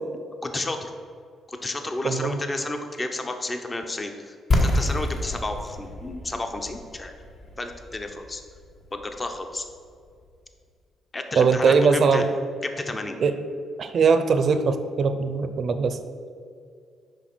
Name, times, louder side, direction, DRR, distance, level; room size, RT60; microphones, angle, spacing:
voice 1, 0.4-0.9 1.5-7.1 7.6-8.4 8.9-9.6 11.1-12.2 12.6-13.2, left 2 dB, 25° left, 6 dB, 0.7 m, -32 dB
voice 2, 2.0-2.4 11.4-12.3 13.2-13.3 13.8-16.0, right 5 dB, 55° right, 10 dB, 0.6 m, -21 dB
sound 1, 4.5-10.2, left 1 dB, 50° left, 1.2 m, -28 dB
6.3 x 5.0 x 6.1 m, 2.2 s
cardioid pair, 90°, 0 cm